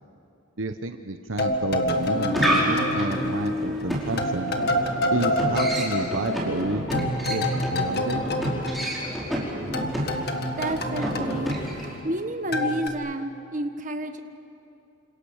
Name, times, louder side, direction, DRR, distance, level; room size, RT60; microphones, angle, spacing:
voice 1, 0.6-4.6 5.1-8.2, right 2 dB, 70° right, 7 dB, 1.0 m, -30 dB
sound 1, 1.4-3.8 4.2-9.4 9.7-12.2 12.5-12.9, left 1 dB, 50° left, 1.9 m, -28 dB
sound 2, 1.9-12.0, equal, ahead, 4.9 m, -29 dB
voice 2, 10.6-11.6 12.0-14.2, right 1 dB, 40° right, 6 dB, 1.5 m, -30 dB
30.0 x 27.0 x 6.6 m, 2.7 s
head